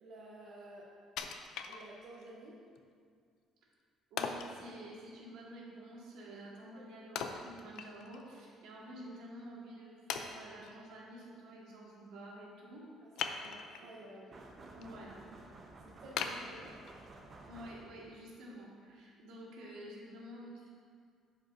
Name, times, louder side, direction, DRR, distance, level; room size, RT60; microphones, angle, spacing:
voice 1, 0.0-0.9 1.7-2.6 6.8-6.9 13.0-13.1 13.4-14.3 14.8-15.0 15.8-16.7, right 1 dB, 50° right, -5 dB, 0.9 m, -52 dB
Wood, 1.2-2.3 2.8-2.9 4.2-4.6 7.2-8.3 8.6-8.7 9.4-9.5 10.1-10.8 13.2-13.9 14.4-14.8 15.3-15.4 16.2-17.2 17.7-17.8, left 7 dB, 65° left, 0.4 m, -40 dB
voice 2, 4.1-12.9 13.8-13.9 14.8-15.1 17.5-20.7, right 1 dB, 75° right, -4 dB, 1.7 m, -50 dB
sound 1, 14.3-18.2, right 2 dB, 25° right, 0.6 m, -53 dB
11.5 x 5.2 x 2.6 m, 2.2 s
cardioid pair, 180°, 0 cm